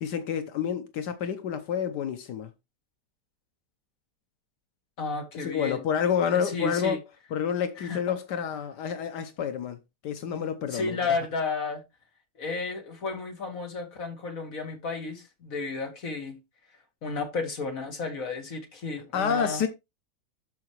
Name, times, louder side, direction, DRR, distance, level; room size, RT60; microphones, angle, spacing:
voice 1, 0.0-2.5 5.4-7.0 7.3-9.8 10.0-11.0 19.1-19.7, left 7 dB, 75° left, 1.4 m, -29 dB
voice 2, 5.0-5.8 6.3-7.0 7.8-8.0 10.7-11.8 12.4-16.4 17.0-19.7, left 4 dB, 55° left, 2.1 m, -32 dB
12.5 x 4.8 x 3.1 m
omnidirectional pair, 1.8 m